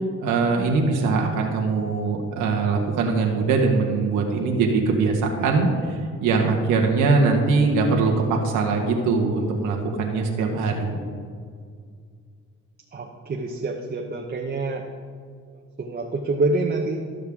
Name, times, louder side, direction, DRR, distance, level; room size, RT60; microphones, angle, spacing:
voice 1, 0.2-5.9 6.2-11.0, right 4 dB, 90° right, 1 dB, 1.5 m, -22 dB
voice 2, 12.9-14.8 15.8-17.0, right 3 dB, 30° right, 1 dB, 0.9 m, -26 dB
13.5 x 6.5 x 3.6 m, 2.1 s
cardioid pair, 90°, 30 cm